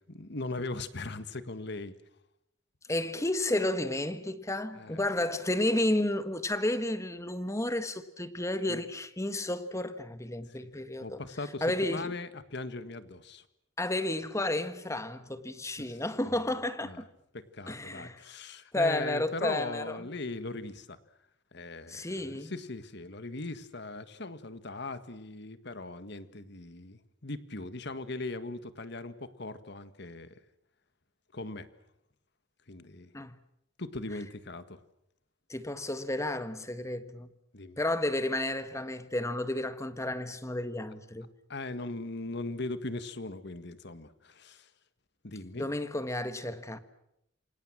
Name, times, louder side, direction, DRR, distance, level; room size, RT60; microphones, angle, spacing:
voice 1, 0.0-1.9 4.7-5.0 8.7-8.8 10.5-10.7 11.0-13.5 15.8-16.4 16.8-17.0 17.3-21.0 21.5-30.4 31.3-31.7 32.7-33.1 33.8-34.8 37.5-37.8 41.5-44.7 45.2-45.7, left 2 dB, 60° left, 1.7 m, -39 dB
voice 2, 2.9-11.2 11.6-12.1 13.8-17.1 17.7-18.2 18.7-20.0 21.9-22.5 33.1-33.4 35.5-37.3 37.8-41.3 45.6-46.8, left 1 dB, 15° left, 1.5 m, -32 dB
28.0 x 24.5 x 7.5 m
head